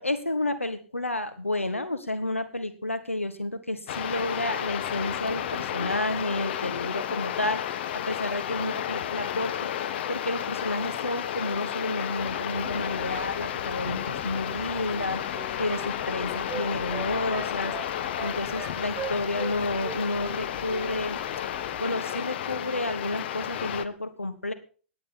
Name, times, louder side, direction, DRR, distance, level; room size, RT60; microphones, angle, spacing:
voice 1, 0.0-15.2 15.6-17.7 18.2-21.2 21.8-24.5, left 2 dB, 90° left, 10 dB, 1.5 m, -31 dB
sound 1, 3.9-23.9, left 10 dB, 55° left, 1.5 m, -32 dB
sound 2, 12.5-21.9, left 9 dB, 30° left, 1.6 m, -49 dB
Wind instrument woodwind instrument, 14.9-19.5 19.8-20.9 21.1-21.3, right 7 dB, 15° right, 4.0 m, -39 dB
18.0 x 10.5 x 4.3 m, 0.38 s
figure-of-eight pair, 105°, 7 cm